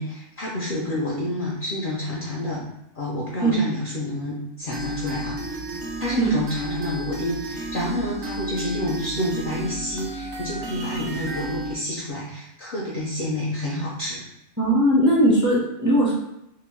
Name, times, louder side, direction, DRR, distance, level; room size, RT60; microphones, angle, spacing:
voice 1, 0.0-2.6 3.0-5.6 6.0-14.2, left 1 dB, 65° left, -4 dB, 0.5 m, -29 dB
sound 1, 4.7-11.7, right 1 dB, 70° right, 0.8 m, -33 dB
voice 2, 14.6-16.2, right 1 dB, 20° right, -7 dB, 0.5 m, -19 dB
2.9 x 2.0 x 3.0 m, 0.83 s
omnidirectional pair, 1.4 m